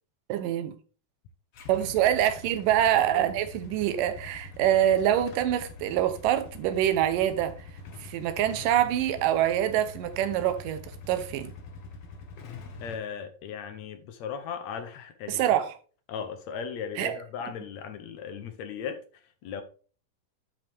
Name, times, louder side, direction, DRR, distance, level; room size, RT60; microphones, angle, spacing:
voice 1, 0.3-0.8 1.7-7.6 8.0-11.5 15.3-15.7 17.0-17.2, right 11 dB, 70° right, 2.5 m, -25 dB
Motorcycle / Engine starting / Idling, 1.5-13.0, left 3 dB, 55° left, 2.0 m, -44 dB
voice 2, 12.8-15.4 16.1-19.6, left 7 dB, 70° left, 1.7 m, -37 dB
10.0 x 5.6 x 3.6 m
omnidirectional pair, 4.3 m